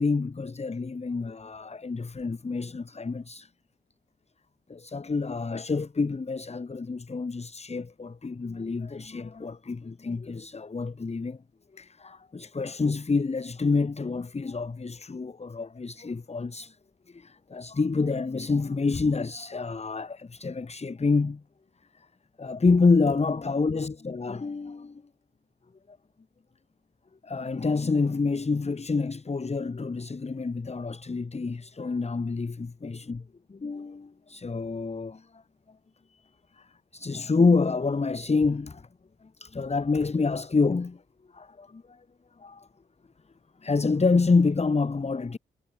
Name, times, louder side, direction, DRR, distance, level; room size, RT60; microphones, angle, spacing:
voice 1, 0.0-3.5 4.7-11.4 11.7-16.8 17.1-21.4 22.0-22.1 22.4-25.0 25.9-26.0 27.2-35.4 36.1-38.9 39.2-41.0 41.3-42.0 42.4-42.7 43.6-45.4, left 4 dB, 30° left, 1.9 m, -28 dB
cardioid pair, 85°, 20 cm